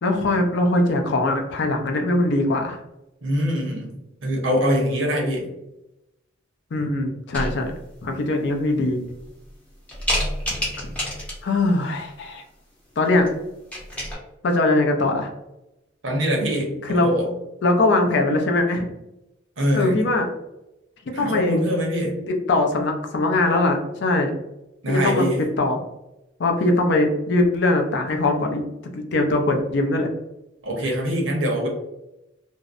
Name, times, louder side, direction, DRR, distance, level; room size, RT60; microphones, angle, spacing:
voice 1, 0.0-2.8 6.7-7.7 8.0-9.0 11.4-12.4 13.0-13.3 14.4-15.3 16.8-17.1 17.6-18.9 19.7-20.3 21.1-21.6 22.3-24.3 24.9-25.3 25.6-25.8 26.4-28.6 28.9-30.1, left 2 dB, 60° left, 3 dB, 0.4 m, -21 dB
voice 2, 3.2-4.0 4.2-5.5 16.0-17.3 19.6-20.0 21.1-22.2 24.8-25.5 30.6-31.7, equal, 70° right, -1 dB, 0.8 m, -23 dB
sound 1, 7.3-7.9 8.5-8.6 9.1-9.5 9.9-11.6 13.0-13.3 13.5-14.2, equal, 5° left, 0.6 m, -28 dB
2.6 x 2.0 x 2.4 m, 0.92 s
head